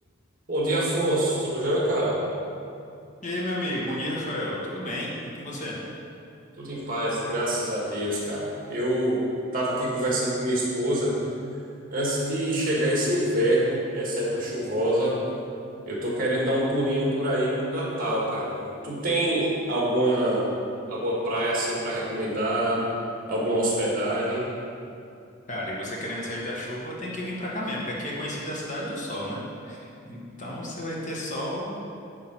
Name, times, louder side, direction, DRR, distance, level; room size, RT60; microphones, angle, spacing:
voice 1, 0.5-2.2 6.6-9.2 9.5-11.2 11.9-15.2 15.9-20.5 20.9-22.8 23.3-24.5, right 1 dB, 45° right, -5 dB, 1.9 m, -25 dB
voice 2, 3.2-5.7 25.5-31.8, left 1 dB, 40° left, -4 dB, 1.5 m, -32 dB
9.8 x 3.7 x 6.2 m, 2.5 s
head